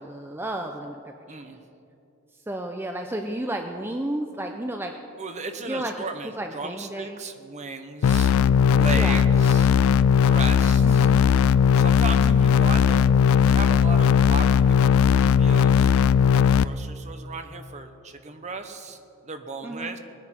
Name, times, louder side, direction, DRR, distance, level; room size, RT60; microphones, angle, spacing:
voice 1, 0.0-1.6 2.5-4.9 5.7-5.9 6.4-7.2 8.9-9.2 10.8-11.2 12.2-12.6 19.6-20.0, right 1 dB, 10° right, 4 dB, 0.5 m, -32 dB
voice 2, 1.3-1.6 5.2-8.4 8.7-9.7 10.2-11.1 11.8-13.1 13.4-15.9 16.3-19.0 19.2-20.0, right 4 dB, 30° right, 7 dB, 0.9 m, -35 dB
sound 1, 8.0-16.6, left 7 dB, 70° left, 0.3 m, -18 dB
20.5 x 9.9 x 4.4 m, 2.7 s
head